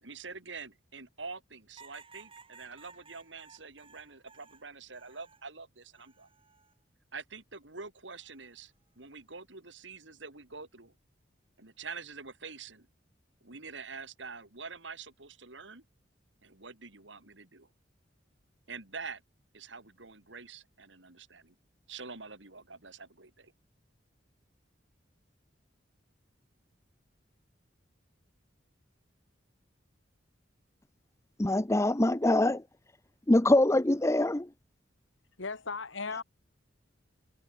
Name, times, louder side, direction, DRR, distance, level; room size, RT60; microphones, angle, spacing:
voice 1, 0.0-6.3 7.1-10.9 11.6-12.9 13.4-15.8 16.4-17.7 18.7-19.2 19.5-21.6 21.9-23.5, right 4 dB, 70° right, 3.7 m, -46 dB
sound 1, 1.8-5.5 5.9-6.7 8.1-8.5, right 5 dB, 30° right, 7.9 m, -57 dB
voice 2, 31.4-32.6 33.3-34.5, left 1 dB, 15° left, 0.8 m, -24 dB
voice 3, 35.4-36.2, left 4 dB, 90° left, 2.0 m, -36 dB
head